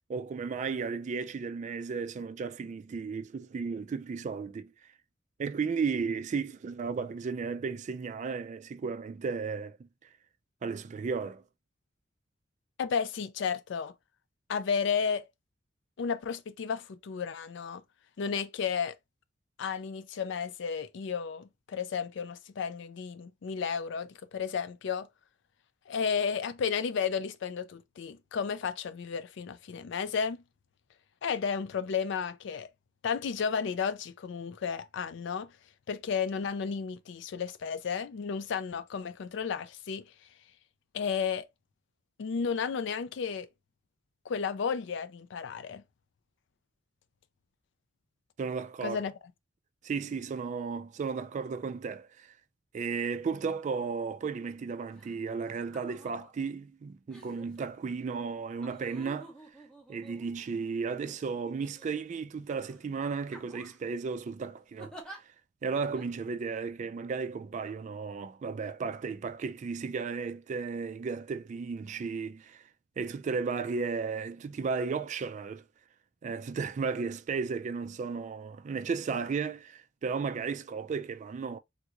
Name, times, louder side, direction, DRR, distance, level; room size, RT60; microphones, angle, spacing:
voice 1, 0.1-4.7 5.4-9.9 10.6-11.4 48.4-49.0 49.8-52.3 52.7-59.4 59.9-65.2 65.6-72.6 73.0-75.6 76.2-81.6, right 5 dB, 40° right, 0.3 m, -34 dB
voice 2, 12.8-13.9 14.5-15.2 16.0-17.8 18.2-18.9 19.6-25.1 25.9-30.4 31.2-32.7 33.0-35.5 35.9-40.1 40.9-41.4 42.2-43.5 44.3-45.8 48.8-49.1, left 6 dB, 65° left, 0.4 m, -33 dB
sound 1, 54.9-55.2 55.6-56.3 57.1-57.6 58.6-60.7 61.5-62.2 62.6-62.8 63.3-63.9 64.8-65.2 66.0-66.1, right 1 dB, 5° left, 0.8 m, -50 dB
3.5 x 2.4 x 2.9 m
head